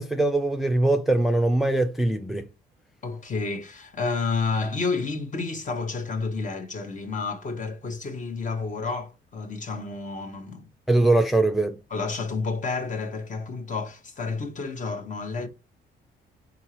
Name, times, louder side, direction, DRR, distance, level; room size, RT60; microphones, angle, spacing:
voice 1, 0.0-2.4 10.9-11.8, right 2 dB, ahead, 0.5 m, -22 dB
voice 2, 3.0-10.6 11.9-15.5, left 4 dB, 40° left, 1.1 m, -30 dB
4.5 x 3.9 x 3.0 m
cardioid pair, 90°, 20 cm